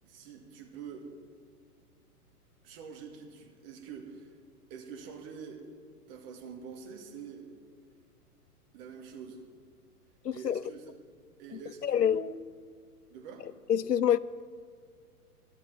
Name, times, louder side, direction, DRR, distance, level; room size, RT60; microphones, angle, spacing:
voice 1, 0.0-1.1 2.6-4.4 4.7-5.6 6.1-7.5 8.7-9.4 10.3-10.9 11.4-12.2 13.1-13.5, right 6 dB, 35° right, 2.2 m, -45 dB
voice 2, 10.2-10.6 11.5-12.2 13.7-14.2, left 9 dB, 90° left, 0.6 m, -27 dB
12.5 x 12.5 x 5.9 m
figure-of-eight pair, 115°, 47 cm